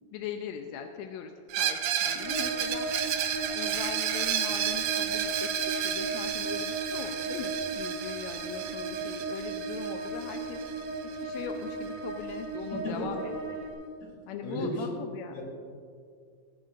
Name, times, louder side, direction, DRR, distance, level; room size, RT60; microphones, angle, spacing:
voice 1, 0.1-5.5 5.8-10.6 11.2-13.3 14.3-15.3, left 8 dB, 80° left, 5 dB, 1.7 m, -40 dB
Screech, 1.5-11.1, right 10 dB, 75° right, 1.7 m, -32 dB
sound 1, 2.2-13.7, right 3 dB, 55° right, 3.3 m, -36 dB
voice 2, 12.7-13.1 14.0-14.1 14.4-14.9 15.3-15.4, left 1 dB, 40° left, -3 dB, 3.9 m, -34 dB
18.5 x 12.5 x 2.5 m, 2.2 s
omnidirectional pair, 3.7 m